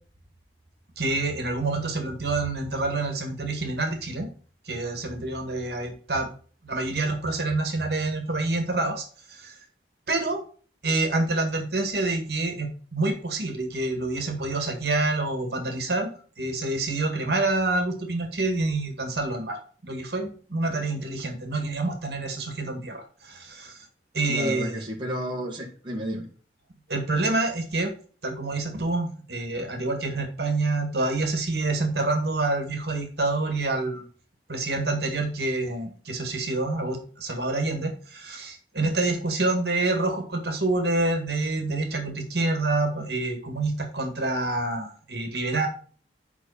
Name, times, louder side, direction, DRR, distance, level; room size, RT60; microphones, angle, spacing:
voice 1, 1.0-4.3 4.7-6.3 6.6-9.6 10.1-10.4 10.8-16.1 16.4-23.8 24.1-24.8 26.9-27.9 28.2-34.1 34.5-45.7, right 2 dB, 65° right, 1.9 m, -27 dB
voice 2, 24.2-26.3, right 1 dB, 25° right, 1.8 m, -31 dB
8.2 x 5.4 x 4.2 m
head